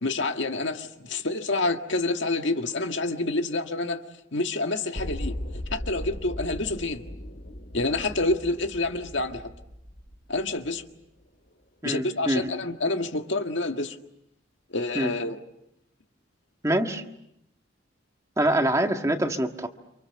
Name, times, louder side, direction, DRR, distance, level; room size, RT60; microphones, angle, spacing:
voice 1, 0.0-4.0 4.3-5.3 5.7-7.0 7.7-9.4 10.3-10.8 11.8-14.0 14.7-15.4, left 2 dB, 70° left, 1.8 m, -28 dB
sound 1, 4.9-10.9 11.2-11.3, equal, 55° left, 3.6 m, -38 dB
voice 2, 11.8-12.5 14.9-15.1 16.6-17.0 18.4-19.7, right 1 dB, 15° right, 1.7 m, -25 dB
30.0 x 27.5 x 7.0 m
head